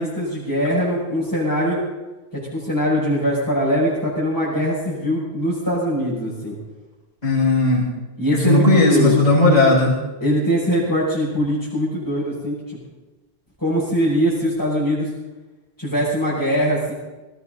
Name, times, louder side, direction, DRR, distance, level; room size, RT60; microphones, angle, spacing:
voice 1, 0.0-1.8 2.3-6.6 8.2-9.3 10.2-12.8 13.6-15.1 15.8-16.9, equal, 15° left, -10 dB, 6.0 m, -22 dB
voice 2, 7.2-7.9 8.3-10.0, left 2 dB, 40° left, -6 dB, 6.4 m, -16 dB
20.0 x 16.5 x 4.0 m, 1.1 s
omnidirectional pair, 1.1 m